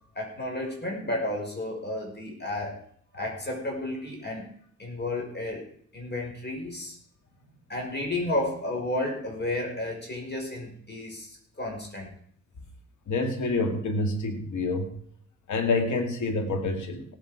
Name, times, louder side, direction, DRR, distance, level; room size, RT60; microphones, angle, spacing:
voice 1, 0.1-2.8 3.1-4.5 4.8-5.6 5.9-7.0 7.7-12.1, left 1 dB, 35° left, 0 dB, 5.2 m, -32 dB
voice 2, 13.1-14.9 15.5-17.1, left 3 dB, 90° left, 5 dB, 2.2 m, -27 dB
17.5 x 8.9 x 5.0 m, 0.62 s
cardioid pair, 90°, 29 cm